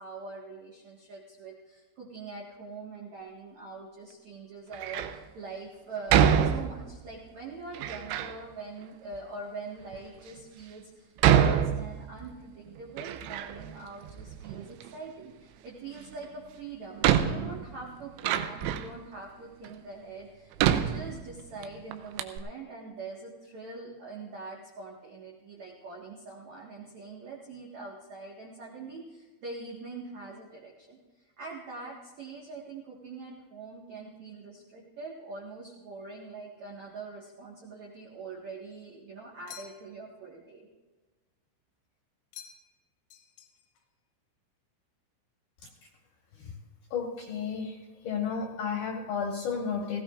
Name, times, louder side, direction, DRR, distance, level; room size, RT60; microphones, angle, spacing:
voice 1, 0.0-31.0 31.4-40.7, right 3 dB, 70° right, -3 dB, 1.7 m, -43 dB
Door, 4.7-5.2 6.1-7.1 7.7-8.4 9.1-9.2 9.9-10.0 11.2-12.4 12.7-13.8 14.0-14.9 16.2-16.3 17.0-19.0 19.6-19.7 20.6-21.7 21.9-22.0 22.2-22.4, right 9 dB, 85° right, 2.6 m, -26 dB
sound 1, 39.5-40.1 42.3-42.8 43.1-43.9, left 10 dB, 85° left, 3.8 m, -49 dB
voice 2, 46.9-47.8 48.0-50.0, left 6 dB, 65° left, 0 dB, 2.6 m, -32 dB
18.5 x 16.5 x 2.5 m, 1.2 s
omnidirectional pair, 5.9 m